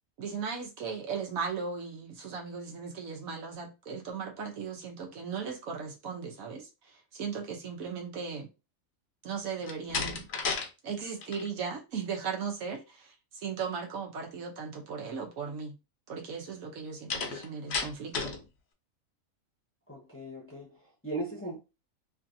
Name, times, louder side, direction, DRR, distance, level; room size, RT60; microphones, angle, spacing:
voice 1, 0.2-8.5 9.2-10.3 10.8-15.7 16.1-18.3, right 6 dB, 75° right, 1.2 m, -37 dB
Slam, 9.6-10.7 11.0-11.5 17.1-18.4, left 4 dB, 60° left, 0.8 m, -33 dB
voice 2, 19.9-21.6, right 2 dB, 10° left, 0.7 m, -38 dB
3.1 x 2.6 x 2.6 m
omnidirectional pair, 1.5 m